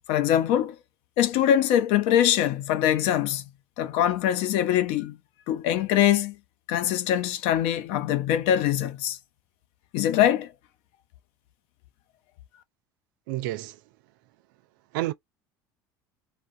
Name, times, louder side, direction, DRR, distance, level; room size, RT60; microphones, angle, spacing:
voice 1, 0.1-0.8 1.2-3.4 3.8-5.2 5.5-6.4 6.7-9.2 9.9-10.5, left 11 dB, 65° left, 0.6 m, -23 dB
voice 2, 13.3-13.7 14.9-15.1, right 16 dB, 70° right, 0.4 m, -29 dB
2.3 x 2.1 x 2.6 m
hypercardioid pair, 80°, 11 cm